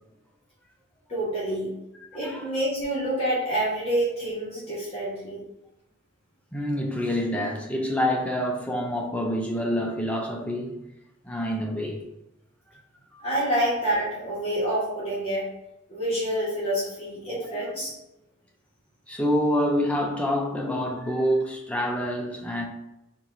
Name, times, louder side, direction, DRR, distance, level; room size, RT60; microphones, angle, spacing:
voice 1, 1.1-1.7 2.1-5.4 13.2-15.5 15.9-17.9, right 1 dB, 30° left, 1.4 m, -27 dB
voice 2, 6.5-10.8 11.2-12.0 13.1-13.2 17.5-17.6 19.1-22.6, equal, 5° left, 0.5 m, -27 dB
4.5 x 2.5 x 3.9 m
head